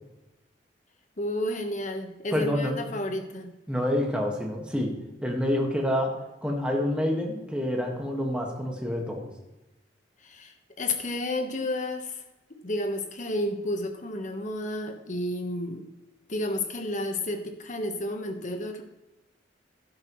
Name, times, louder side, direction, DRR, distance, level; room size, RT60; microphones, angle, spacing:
voice 1, 1.2-3.5 10.2-12.2 12.5-15.8 16.3-18.8, left 1 dB, 45° left, 5 dB, 1.3 m, -31 dB
voice 2, 2.3-2.8 3.7-9.3, left 1 dB, 5° right, 0 dB, 1.8 m, -28 dB
12.0 x 10.5 x 3.2 m, 1.0 s
head